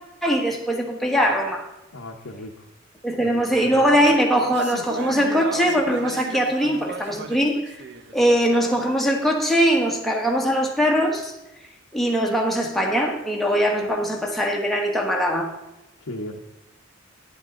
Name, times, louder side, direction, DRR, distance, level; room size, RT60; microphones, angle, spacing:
voice 1, 0.2-1.7 3.0-7.8 8.1-11.3 11.9-15.5, equal, ahead, 0 dB, 1.3 m, -21 dB
voice 2, 1.9-2.5 3.2-3.8 16.0-16.4, left 1 dB, 90° left, -1 dB, 0.9 m, -36 dB
sound 1, 3.6-8.9, right 3 dB, 55° right, 0.8 m, -35 dB
10.5 x 7.9 x 3.7 m, 0.96 s
head